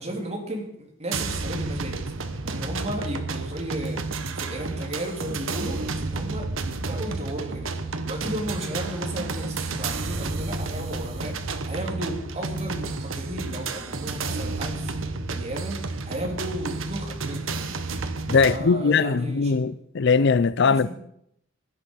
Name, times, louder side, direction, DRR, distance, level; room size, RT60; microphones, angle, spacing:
voice 1, 0.0-2.0 2.4-4.0 4.4-14.9 15.3-17.6 18.4-19.6 20.6-20.9, right 1 dB, 35° right, 3.4 m, -34 dB
sound 1, 1.1-18.6, right 3 dB, 75° right, 1.2 m, -31 dB
voice 2, 18.3-20.9, left 5 dB, 60° left, 0.5 m, -20 dB
17.0 x 11.0 x 5.6 m
head